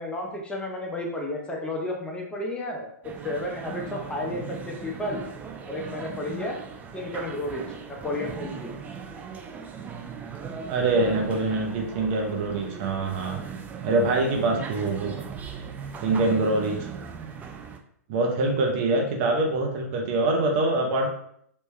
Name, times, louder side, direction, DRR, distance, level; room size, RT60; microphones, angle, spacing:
voice 1, 0.0-2.9 3.2-5.2 5.7-6.6 6.9-8.7, left 1 dB, 10° left, 0 dB, 0.8 m, -32 dB
sound 1, 3.0-17.8, right 6 dB, 15° right, 0.4 m, -38 dB
voice 2, 10.7-13.4 13.8-15.2 16.0-16.9 18.1-21.1, right 2 dB, 45° right, 2 dB, 0.9 m, -24 dB
3.2 x 3.0 x 3.2 m, 0.70 s
hypercardioid pair, 115°, 9 cm